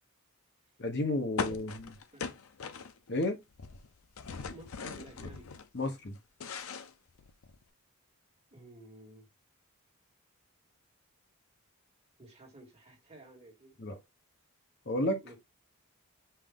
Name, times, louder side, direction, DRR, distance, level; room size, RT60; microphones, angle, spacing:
voice 1, 0.8-1.9 3.1-3.4 5.7-6.2 13.8-13.9 14.9-15.2, left 1 dB, 50° left, 0.9 m, -32 dB
sound 1, 1.4-3.3 3.5-5.7 6.1-7.6, left 5 dB, 75° left, 0.6 m, -40 dB
voice 2, 4.5-5.5 8.5-9.3 12.2-13.8 15.2-15.4, right 1 dB, 30° right, 1.7 m, -52 dB
5.6 x 2.6 x 3.6 m
head